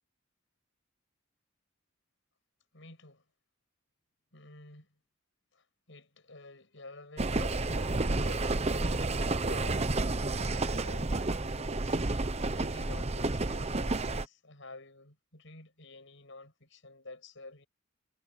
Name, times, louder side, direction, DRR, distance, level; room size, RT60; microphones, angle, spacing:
voice 1, 2.7-3.2 4.3-4.9 5.5-9.1 9.4-9.8 10.1-17.7, left 2 dB, 65° left, 7.9 m, -51 dB
sound 1, 7.2-14.2, right 2 dB, 30° right, 0.9 m, -30 dB
head